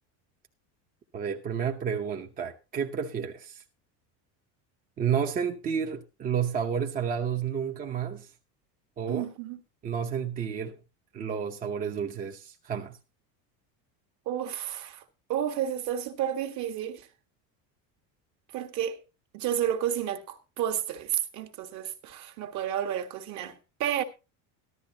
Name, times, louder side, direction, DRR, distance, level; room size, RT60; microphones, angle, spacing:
voice 1, 1.1-3.6 5.0-8.3 9.0-9.2 9.8-10.8 11.1-13.0, right 7 dB, 20° right, 0.8 m, -31 dB
voice 2, 9.1-9.6 14.3-15.0 15.3-17.1 18.5-19.0 19.3-24.0, right 10 dB, 50° right, 1.8 m, -31 dB
14.5 x 12.5 x 2.9 m
cardioid pair, 180°, 38 cm